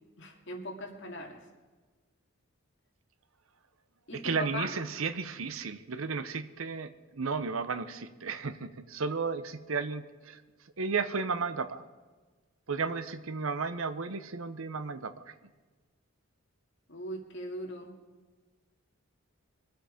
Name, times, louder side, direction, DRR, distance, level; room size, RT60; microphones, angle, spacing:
voice 1, 0.2-1.4 4.1-4.7 16.9-17.9, left 1 dB, 55° left, 0 dB, 2.2 m, -39 dB
voice 2, 4.1-10.4 10.8-11.8 12.7-15.3, right 4 dB, 75° right, 12 dB, 0.8 m, -34 dB
23.5 x 8.0 x 5.0 m, 1.4 s
head